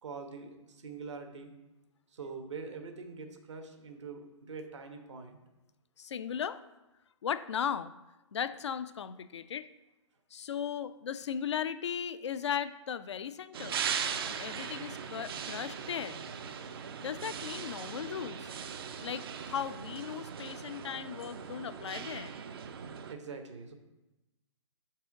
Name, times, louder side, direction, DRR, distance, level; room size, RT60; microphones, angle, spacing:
voice 1, 0.0-1.5 2.1-5.4 23.1-23.7, right 4 dB, 65° right, 5 dB, 1.2 m, -44 dB
voice 2, 6.0-6.6 7.2-7.9 8.3-9.7 10.3-13.8 14.3-16.2 17.0-18.5 19.0-22.3, left 8 dB, 60° left, 14 dB, 0.4 m, -37 dB
sound 1, 13.5-23.1, right 7 dB, 50° right, 0.6 m, -39 dB
6.2 x 4.7 x 4.7 m, 1.0 s
figure-of-eight pair, 125°, 16 cm